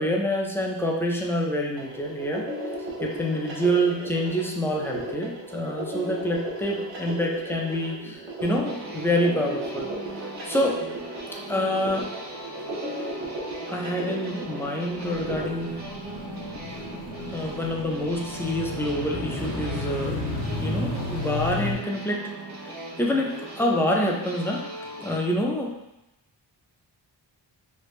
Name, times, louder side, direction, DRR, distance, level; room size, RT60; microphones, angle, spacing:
voice 1, 0.0-2.5 3.0-9.9 10.4-10.8 11.5-12.1 13.7-15.8 17.3-20.2 20.6-22.2 22.6-22.7 23.0-24.7 25.0-25.7, equal, 5° left, -1 dB, 0.3 m, -27 dB
sound 1, 1.8-15.5, right 1 dB, 75° right, 1.0 m, -35 dB
sound 2, 8.4-25.2, right 2 dB, 40° right, 0.6 m, -39 dB
sound 3, 14.9-21.7, left 2 dB, 45° left, 0.8 m, -33 dB
3.2 x 2.4 x 3.1 m, 0.93 s
wide cardioid pair, 125°, 44 cm